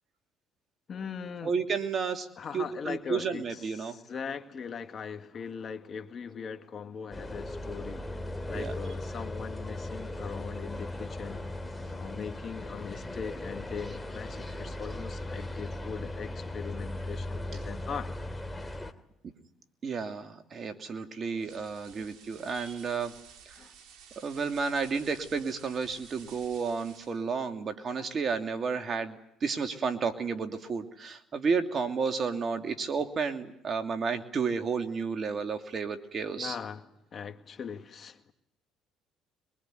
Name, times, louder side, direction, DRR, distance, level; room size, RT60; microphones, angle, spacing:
voice 1, 0.9-1.6 2.4-8.2 8.5-11.4 11.9-18.1 22.0-22.1 23.6-23.7 36.4-38.3, left 6 dB, 45° left, 2.1 m, -40 dB
voice 2, 1.4-2.3 2.5-4.0 8.5-8.7 19.8-23.1 23.4-23.6 24.2-36.6, right 5 dB, 45° right, 2.8 m, -32 dB
sound 1, 7.1-18.9, left 1 dB, 15° left, 2.7 m, -38 dB
sound 2, 21.4-27.3, right 7 dB, 65° right, 3.2 m, -53 dB
23.0 x 23.0 x 9.4 m
supercardioid pair, 70°, 0 cm